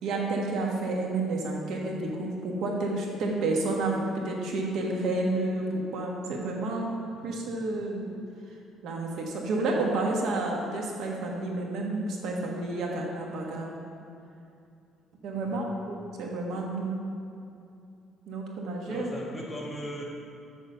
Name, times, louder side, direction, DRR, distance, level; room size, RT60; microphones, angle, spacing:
voice 1, 0.0-8.2 8.8-13.7 15.2-17.0 18.3-19.1, right 2 dB, 70° right, -1 dB, 1.4 m, -30 dB
voice 2, 7.0-7.5 15.3-15.8 18.9-20.0, equal, 5° left, -4 dB, 1.4 m, -39 dB
6.9 x 6.4 x 5.7 m, 2.6 s
cardioid pair, 155°, 0 cm